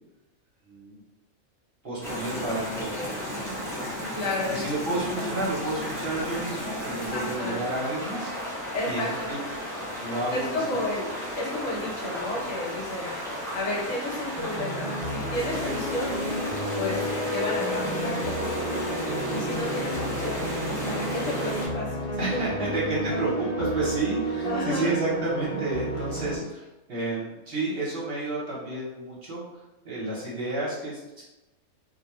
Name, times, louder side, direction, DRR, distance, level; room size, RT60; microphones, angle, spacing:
voice 1, 0.7-1.0 1.8-3.9 4.5-9.0 9.3-9.4 10.0-10.8 22.2-29.4 29.8-31.2, right 2 dB, 50° right, -7 dB, 0.9 m, -31 dB
sound 1, 2.0-21.7, equal, 5° left, 0.4 m, -34 dB
voice 2, 4.1-4.6 5.0-5.3 7.1-7.6 8.7-9.3 10.3-13.1 13.5-16.2 16.7-17.0 17.3-19.0 19.3-22.0 22.2-23.2 24.4-24.9, left 1 dB, 70° left, -4 dB, 1.1 m, -32 dB
sound 2, 14.4-26.4, right 1 dB, 50° left, 0.8 m, -31 dB
2.3 x 2.2 x 2.9 m, 1.0 s
omnidirectional pair, 1.4 m